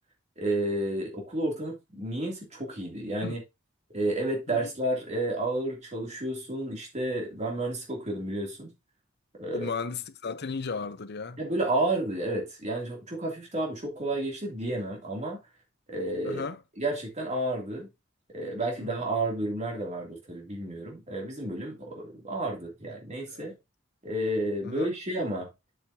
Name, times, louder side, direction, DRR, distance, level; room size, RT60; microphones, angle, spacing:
voice 1, 0.4-3.4 3.9-8.7 9.4-9.7 11.4-15.4 15.9-16.4 16.8-17.9 18.3-23.5 24.0-25.5, right 1 dB, 35° right, 2.8 m, -31 dB
voice 2, 9.5-11.4 16.2-16.6 18.8-19.0 23.3-23.5 24.6-24.9, left 4 dB, 55° left, 0.7 m, -35 dB
7.8 x 7.7 x 2.8 m
head